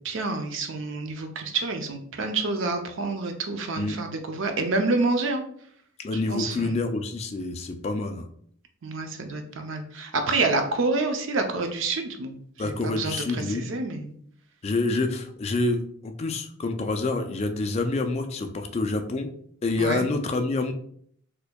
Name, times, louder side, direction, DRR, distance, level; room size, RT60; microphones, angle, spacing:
voice 1, 0.0-5.4 6.3-6.7 8.8-14.1 19.8-20.0, right 3 dB, 60° right, 5 dB, 0.5 m, -28 dB
voice 2, 6.0-8.3 12.6-13.6 14.6-19.3 19.6-20.7, left 3 dB, 30° left, 6 dB, 0.3 m, -27 dB
4.3 x 2.6 x 2.2 m, 0.63 s
head